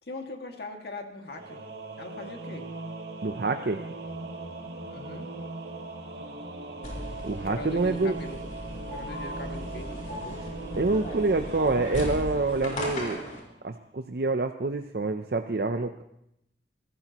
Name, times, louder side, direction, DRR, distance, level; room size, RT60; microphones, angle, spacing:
voice 1, 0.0-1.6 2.0-2.7 4.9-5.3 7.4-8.4 8.9-10.5, left 2 dB, 65° left, 3 dB, 2.0 m, -41 dB
Singing / Musical instrument, 1.3-13.8, right 2 dB, 75° right, 1.7 m, -40 dB
voice 2, 3.2-3.8 7.2-8.2 10.8-13.2 13.6-16.0, right 3 dB, 60° right, 6 dB, 0.6 m, -27 dB
sound 1, 6.8-13.4, equal, 45° left, 4.6 m, -37 dB
25.0 x 15.0 x 3.0 m, 0.79 s
head